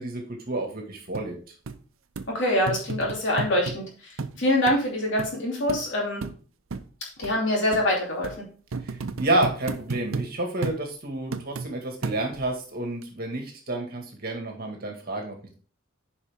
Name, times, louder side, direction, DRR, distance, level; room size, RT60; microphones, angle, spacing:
voice 1, 0.0-1.4 8.8-15.4, right 1 dB, 50° right, 2 dB, 1.9 m, -29 dB
sound 1, 1.1-1.3 1.7-1.8 2.2-2.3 2.7-3.8 4.2-4.4 4.7-4.8 5.2-5.3 5.7-5.8 6.2-6.4 6.7-6.8 7.2-7.3 7.7-7.9 8.2-8.4 8.7-10.3 10.6-10.8 11.3-11.7 12.0-12.5 13.0-13.1, right 4 dB, 90° right, 0.7 m, -32 dB
voice 2, 2.3-6.2 7.2-8.4, left 1 dB, 65° left, -2 dB, 2.8 m, -25 dB
9.7 x 5.2 x 3.6 m, 0.40 s
head